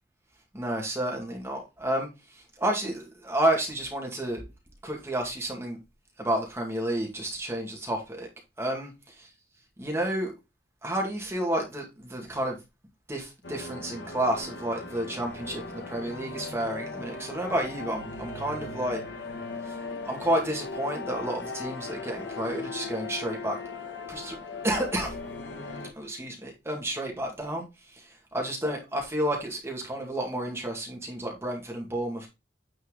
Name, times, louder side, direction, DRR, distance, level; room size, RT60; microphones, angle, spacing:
voice 1, 0.5-4.4 4.8-5.8 6.2-8.3 8.6-8.9 9.8-10.3 10.8-12.6 13.1-19.0 19.6-19.8 20.0-23.6 24.1-24.4 24.6-25.2 26.0-32.3, right 1 dB, 15° right, 2.0 m, -30 dB
sound 1, 13.4-25.9, left 3 dB, 70° left, 1.5 m, -38 dB
9.3 x 4.5 x 3.8 m
head